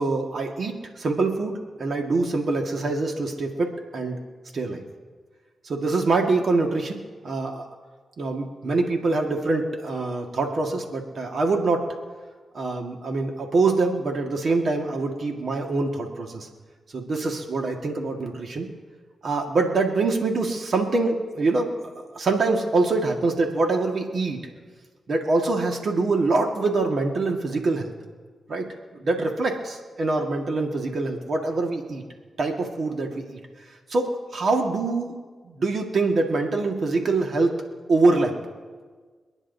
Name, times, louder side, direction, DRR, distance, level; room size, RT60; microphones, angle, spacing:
voice 1, 0.0-4.2 4.5-4.8 5.6-7.0 7.2-7.7 8.2-11.9 12.5-16.5 16.9-18.7 19.2-21.8 22.1-24.4 25.1-27.9 28.5-28.7 28.9-32.0 32.4-33.4 33.9-35.1 35.5-37.6 37.9-38.4, right 3 dB, 65° right, 2 dB, 1.7 m, -24 dB
28.0 x 10.0 x 2.7 m, 1.5 s
supercardioid pair, 45°, 0 cm